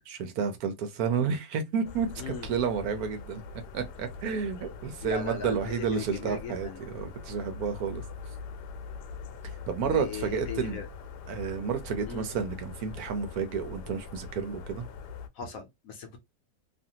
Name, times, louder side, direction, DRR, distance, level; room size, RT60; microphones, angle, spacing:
voice 1, 0.1-2.1 2.4-3.4 3.7-8.0 9.7-10.8 11.3-14.9, right 6 dB, 70° right, 1.1 m, -31 dB
sound 1, 1.8-15.3, left 5 dB, 80° left, 1.2 m, -42 dB
voice 2, 2.2-2.5 5.0-6.8 9.8-10.9 12.0-12.3 15.3-16.2, left 6 dB, 65° left, 0.9 m, -38 dB
2.7 x 2.5 x 2.7 m
omnidirectional pair, 1.7 m